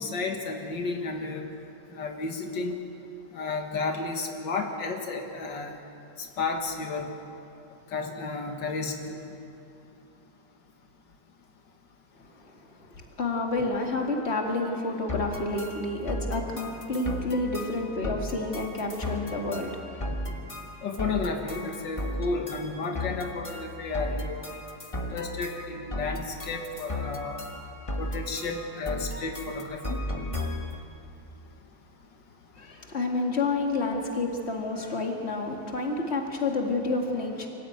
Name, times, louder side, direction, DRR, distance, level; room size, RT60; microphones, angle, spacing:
voice 1, 0.0-1.5 1.9-2.8 3.3-5.7 6.4-7.1 7.9-9.2 20.8-24.5 25.1-27.4 28.0-30.0, left 4 dB, 85° left, 3 dB, 2.2 m, -32 dB
voice 2, 13.0-20.5 32.6-37.5, left 2 dB, 35° left, 1 dB, 2.5 m, -29 dB
sound 1, 15.1-30.8, left 1 dB, 20° left, 1.4 m, -35 dB
25.0 x 15.0 x 9.0 m, 2.8 s
omnidirectional pair, 1.9 m